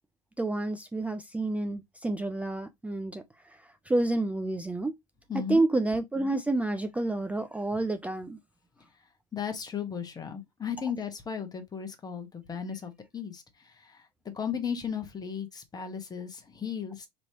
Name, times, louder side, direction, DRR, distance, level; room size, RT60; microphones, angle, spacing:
voice 1, 0.4-4.9 5.3-8.4, right 2 dB, 5° right, 0.5 m, -29 dB
voice 2, 5.3-5.6 9.3-14.1 14.3-17.1, left 7 dB, 20° left, 1.2 m, -35 dB
4.2 x 3.0 x 2.8 m
hypercardioid pair, 85°, 20 cm